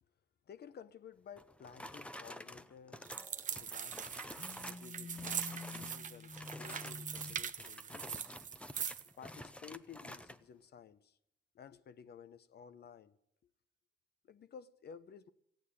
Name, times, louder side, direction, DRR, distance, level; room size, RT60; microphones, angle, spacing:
voice 1, 0.5-3.2 3.5-8.3 9.2-11.2 11.5-13.2 14.2-15.3, left 7 dB, 55° left, 0.9 m, -55 dB
sound 1, 1.4-4.9 5.1-6.0 6.3-10.4, left 1 dB, 5° left, 0.7 m, -50 dB
sound 2, 3.0-9.1, right 7 dB, 40° right, 0.7 m, -42 dB
Telephone, 4.3-7.5, left 4 dB, 35° left, 1.8 m, -49 dB
15.5 x 9.2 x 9.9 m
cardioid pair, 90°, 20 cm